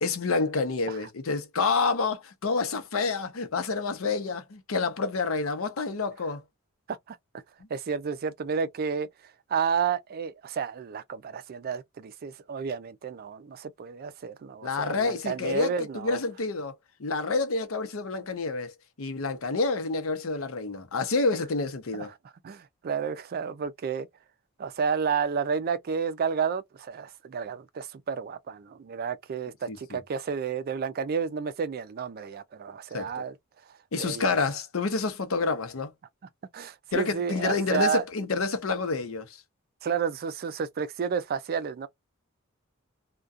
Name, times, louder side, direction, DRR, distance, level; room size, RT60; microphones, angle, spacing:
voice 1, 0.0-6.4 14.6-16.7 17.0-18.7 19.0-22.1 29.7-30.0 32.9-33.2 33.9-35.9 36.9-39.4, left 4 dB, 75° left, 0.7 m, -28 dB
voice 2, 7.7-9.1 9.5-16.2 21.9-22.1 22.4-24.1 24.6-33.3 33.9-34.3 36.5-38.0 39.8-41.9, right 6 dB, 45° right, 0.4 m, -31 dB
2.3 x 2.2 x 2.5 m
head